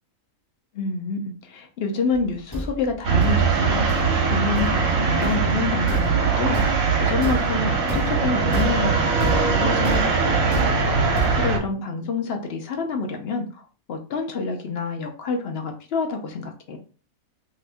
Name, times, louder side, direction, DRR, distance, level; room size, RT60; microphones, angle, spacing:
voice 1, 0.7-10.5 10.8-13.6 13.9-16.8, left 4 dB, 55° left, 4 dB, 0.7 m, -28 dB
Thump thud, 2.1-11.7, equal, 20° left, 0.7 m, -32 dB
sound 1, 3.0-11.6, right 5 dB, 70° right, 1.1 m, -21 dB
2.8 x 2.5 x 3.3 m, 0.38 s
omnidirectional pair, 1.5 m